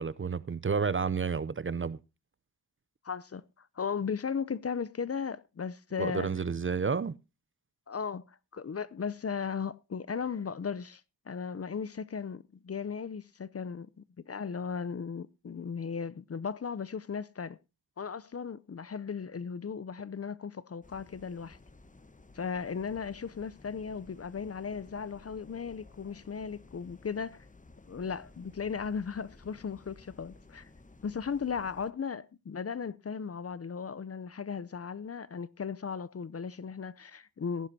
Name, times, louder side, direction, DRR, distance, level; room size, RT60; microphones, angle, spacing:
voice 1, 0.0-2.0 6.0-7.2, right 5 dB, 30° right, 0.6 m, -30 dB
voice 2, 3.0-6.3 7.9-11.0 11.3-17.6 18.0-21.6 22.4-27.4 27.9-30.7 31.0-37.7, left 6 dB, 35° left, 0.6 m, -36 dB
sound 1, 20.8-31.9, left 3 dB, 20° left, 1.0 m, -55 dB
18.0 x 9.9 x 2.8 m
cardioid pair, 70°, 40 cm